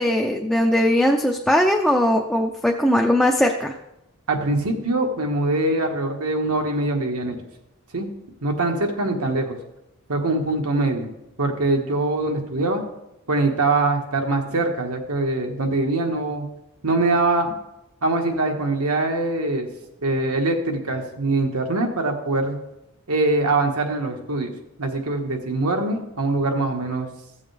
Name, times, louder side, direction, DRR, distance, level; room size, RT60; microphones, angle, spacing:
voice 1, 0.0-3.7, left 1 dB, 5° left, 1 dB, 0.5 m, -19 dB
voice 2, 4.3-7.4 7.9-8.1 8.4-9.6 10.1-11.1 11.4-12.8 13.3-16.5 16.8-17.6 18.0-19.7 20.0-22.6 23.1-24.5 24.8-27.1, right 2 dB, 80° right, 3 dB, 1.5 m, -23 dB
14.5 x 7.2 x 3.4 m, 0.88 s
head